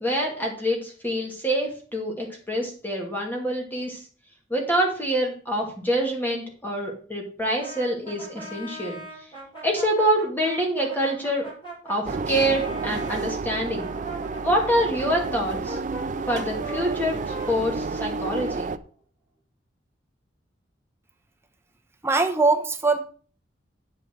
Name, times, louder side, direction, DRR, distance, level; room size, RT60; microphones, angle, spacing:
voice 1, 0.0-4.0 4.5-9.0 9.6-11.4 11.9-13.9 14.4-15.8 16.3-18.7, equal, 10° left, 0 dB, 2.5 m, -26 dB
Brass instrument, 7.6-13.2 13.7-18.5, right 2 dB, 25° left, 6.3 m, -40 dB
sound 1, 12.1-18.8, right 4 dB, 40° right, 0.4 m, -31 dB
voice 2, 22.0-23.0, right 3 dB, 15° right, 4 dB, 1.0 m, -21 dB
8.8 x 8.4 x 4.7 m, 0.41 s
head